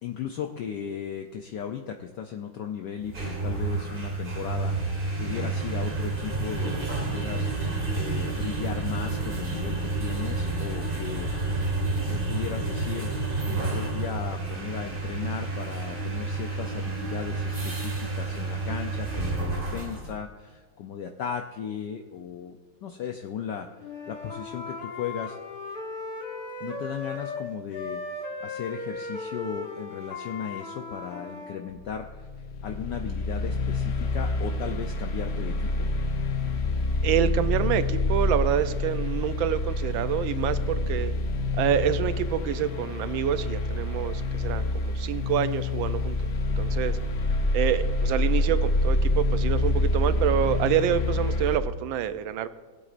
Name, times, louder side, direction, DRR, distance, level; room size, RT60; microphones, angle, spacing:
voice 1, 0.0-11.3 11.6-11.8 12.1-13.2 13.4-25.4 26.6-28.0 28.4-32.3 32.6-35.9, left 8 dB, 70° left, 4 dB, 1.1 m, -36 dB
sound 1, 3.0-20.1, right 3 dB, 30° right, 1.3 m, -30 dB
Wind instrument woodwind instrument, 23.8-27.4 27.7-31.6, left 3 dB, 50° left, 1.8 m, -37 dB
sound 2, 31.8-51.6, left 2 dB, 90° left, 0.5 m, -27 dB
voice 2, 37.0-41.1 41.6-46.2 46.6-47.0 47.5-52.5, right 10 dB, 75° right, 12 dB, 1.2 m, -27 dB
19.5 x 8.2 x 2.5 m, 1.4 s
omnidirectional pair, 2.4 m